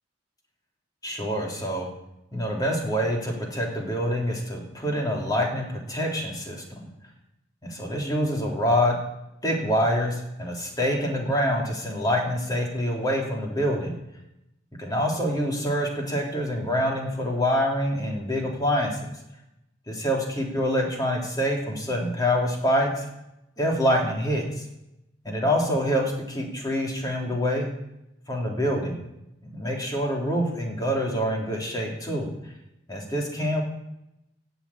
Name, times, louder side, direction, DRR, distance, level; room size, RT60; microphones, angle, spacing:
voice 1, 1.0-1.9 2.3-6.6 7.6-9.0 9.4-13.9 14.8-19.2 19.9-22.9 23.6-24.6 25.2-27.7 28.3-29.0 29.5-32.3 32.9-33.6, equal, 20° left, -1 dB, 3.5 m, -26 dB
16.0 x 7.1 x 8.6 m, 0.87 s
head